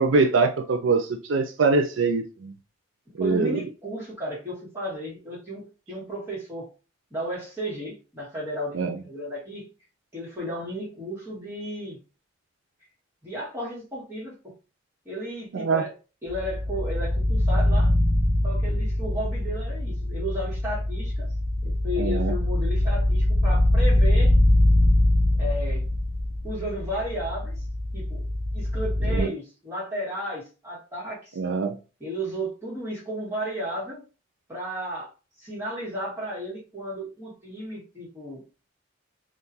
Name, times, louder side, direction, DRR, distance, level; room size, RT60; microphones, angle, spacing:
voice 1, 0.0-2.5 3.2-3.6 8.7-8.9 15.5-15.8 22.0-22.3 29.1-29.3 31.4-31.8, right 4 dB, 80° right, 0.5 m, -23 dB
voice 2, 3.2-6.7 7.1-9.7 10.1-12.0 13.2-14.5 15.0-15.9 16.2-17.9 18.4-21.3 21.6-24.4 25.4-25.9 26.4-27.6 27.9-28.3 28.5-31.4 32.0-34.0 34.5-35.1 35.4-38.4, equal, 15° right, 1.7 m, -34 dB
sound 1, 16.3-29.2, left 1 dB, 35° left, 1.5 m, -23 dB
3.6 x 2.5 x 2.7 m
head